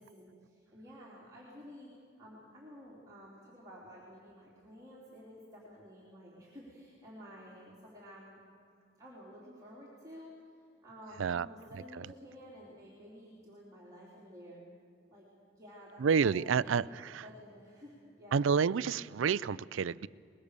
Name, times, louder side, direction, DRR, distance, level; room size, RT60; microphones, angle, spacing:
voice 1, 0.0-8.5 9.0-10.4 10.8-14.7 15.1-16.8 17.2-18.4, equal, 20° right, 3.6 m, -52 dB
voice 2, 16.0-17.2 18.3-20.1, right 6 dB, 90° right, 0.4 m, -29 dB
23.0 x 21.0 x 6.7 m
head